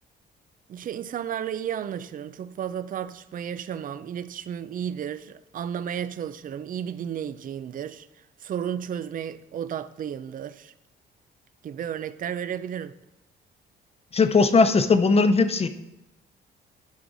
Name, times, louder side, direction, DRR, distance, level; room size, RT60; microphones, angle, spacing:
voice 1, 0.7-8.1 8.4-10.7 11.6-13.0, right 9 dB, 45° right, 0.4 m, -33 dB
voice 2, 14.1-15.7, left 4 dB, 30° left, 0.6 m, -19 dB
11.5 x 4.7 x 3.9 m
cardioid pair, 90°, 20 cm